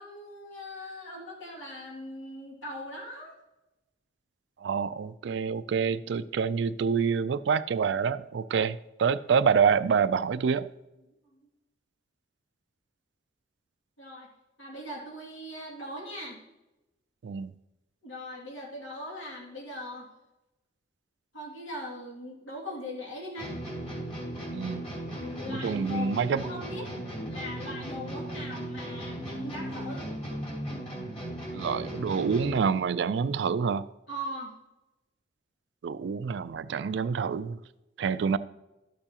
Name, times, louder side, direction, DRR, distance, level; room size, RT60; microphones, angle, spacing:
voice 1, 0.0-3.4 11.3-11.4 14.0-14.3 14.6-16.4 18.0-20.1 21.3-23.5 25.1-26.9 27.3-30.1 34.1-34.5, left 1 dB, 85° left, 2.4 m, -40 dB
voice 2, 4.6-10.7 17.2-17.5 24.5-24.9 25.5-26.4 31.5-33.8 35.8-37.6 38.0-38.4, right 6 dB, 65° right, 0.3 m, -27 dB
sound 1, 23.4-32.8, right 1 dB, 35° left, 3.0 m, -37 dB
12.0 x 6.8 x 2.9 m
head